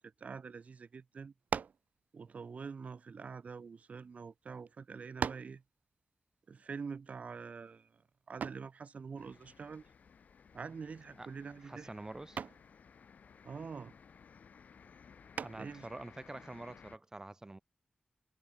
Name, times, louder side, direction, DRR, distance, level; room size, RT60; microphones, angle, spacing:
voice 1, 0.0-1.3 2.1-5.6 6.5-8.0 8.3-9.9 10.5-11.9 13.4-13.9 15.6-15.9, right 5 dB, 65° right, 4.3 m, -45 dB
sound 1, 1.5-1.9 2.8-4.0 4.7-4.8 5.2-5.6 8.4-8.7 10.6-11.0 11.4-11.7 12.4-12.7 15.3-15.8, right 6 dB, 85° right, 0.8 m, -39 dB
sound 2, 9.2-17.0, left 6 dB, 85° left, 6.5 m, -59 dB
voice 2, 11.6-12.4 15.4-17.6, right 2 dB, 25° right, 4.0 m, -46 dB
wide cardioid pair, 110°, 3 cm